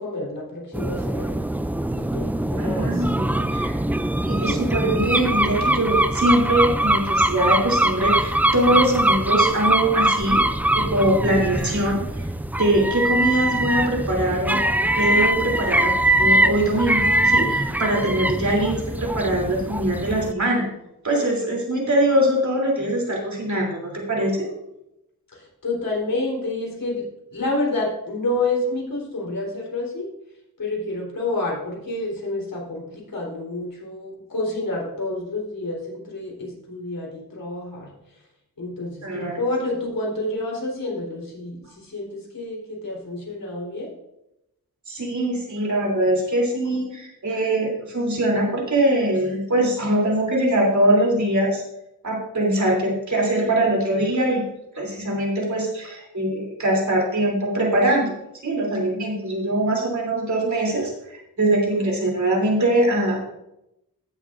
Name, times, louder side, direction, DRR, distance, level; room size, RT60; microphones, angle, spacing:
voice 1, 0.0-1.4 1.9-3.1 25.3-27.0 27.3-30.1 30.6-37.9 38.6-43.9, left 2 dB, 65° left, -3 dB, 3.9 m, -29 dB
sound 1, 0.7-20.3, right 1 dB, 5° right, 0.3 m, -22 dB
voice 2, 2.6-3.8 4.2-10.4 10.7-12.0 12.6-14.6 15.0-15.9 16.2-20.6 21.0-24.5 39.0-39.4 44.9-51.6 52.0-54.4 54.7-58.1 58.4-63.2, right 1 dB, 50° right, -1 dB, 3.2 m, -22 dB
16.0 x 7.4 x 2.6 m, 0.86 s
wide cardioid pair, 90°, 36 cm